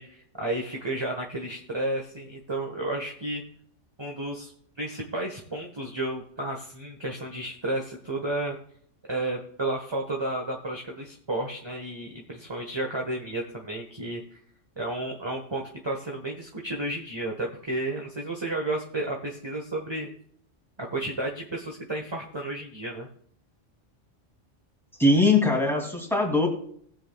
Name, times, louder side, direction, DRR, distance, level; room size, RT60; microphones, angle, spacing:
voice 1, 0.0-3.4 4.0-4.5 4.8-8.6 9.1-14.4 14.8-20.1 20.8-23.1, right 2 dB, 20° right, 0 dB, 1.3 m, -32 dB
voice 2, 25.0-26.5, left 2 dB, ahead, 0 dB, 2.7 m, -21 dB
20.5 x 7.7 x 2.3 m, 0.63 s
omnidirectional pair, 1.3 m